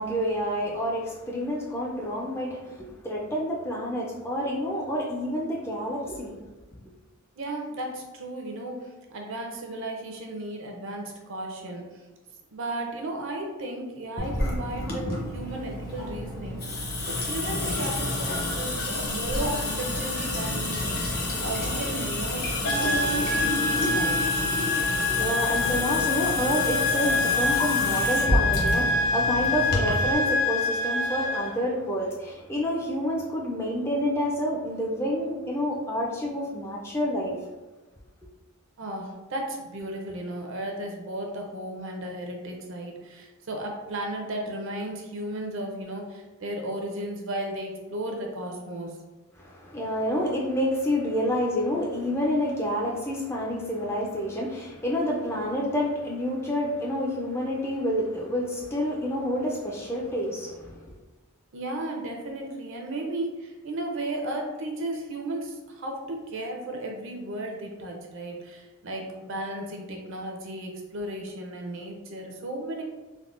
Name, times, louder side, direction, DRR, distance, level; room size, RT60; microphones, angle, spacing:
voice 1, 0.0-6.4 24.6-37.4 49.4-60.9, equal, 10° left, -3 dB, 0.3 m, -28 dB
voice 2, 7.4-11.8 12.5-16.6 17.1-21.0 21.4-24.3 38.8-49.0 61.5-72.8, right 1 dB, 60° right, 1 dB, 0.5 m, -35 dB
Water tap faucet / Sink (filling or washing) / Drip, 14.2-30.1, left 1 dB, 45° left, 0.6 m, -29 dB
sound 1, 22.6-31.6, left 3 dB, 85° left, 0.6 m, -26 dB
3.5 x 2.1 x 2.4 m, 1.1 s
head